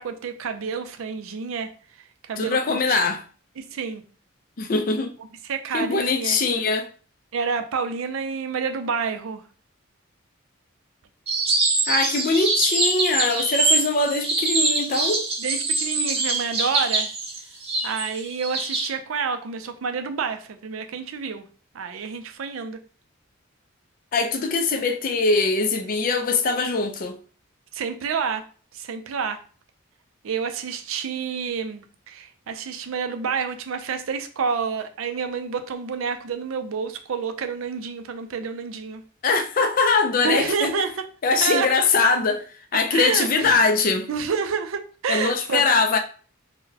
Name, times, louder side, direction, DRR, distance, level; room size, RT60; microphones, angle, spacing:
voice 1, 0.0-1.7 2.0-3.0 3.6-4.0 5.5-6.4 7.3-9.4 15.4-17.1 17.8-21.5 21.7-22.8 27.7-28.4 28.7-29.4 30.2-39.0 40.2-40.9 41.4-41.7 42.7-43.6 44.1-45.8, right 6 dB, 80° right, 0.4 m, -29 dB
voice 2, 2.4-3.2 4.6-5.1 5.7-6.9 11.9-15.2 24.1-27.2 39.2-40.7 41.2-42.4 42.7-44.1 45.1-46.0, left 4 dB, 40° left, 0.4 m, -22 dB
sound 1, 11.3-18.9, right 3 dB, 30° right, 0.6 m, -24 dB
3.9 x 2.1 x 2.7 m
head